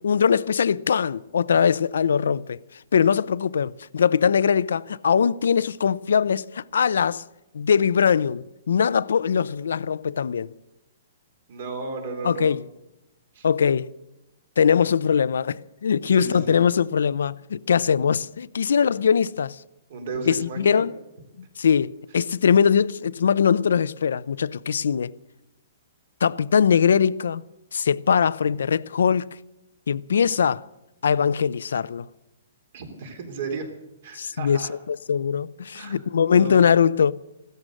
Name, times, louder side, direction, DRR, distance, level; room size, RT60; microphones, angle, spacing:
voice 1, 0.0-2.6 2.9-7.2 7.5-10.5 12.2-12.7 13.4-13.9 14.6-19.6 20.3-20.9 21.6-25.1 26.2-27.4 27.7-29.3 29.9-30.7 31.0-32.1 34.1-37.1, left 7 dB, 80° left, 0.6 m, -21 dB
voice 2, 11.5-12.6 13.4-13.5 16.1-16.6 19.9-20.8 32.7-33.7 34.0-34.7 35.7-36.0 36.3-36.6, right 4 dB, 45° right, 3.5 m, -34 dB
16.0 x 13.5 x 6.5 m
hypercardioid pair, 175°, 0 cm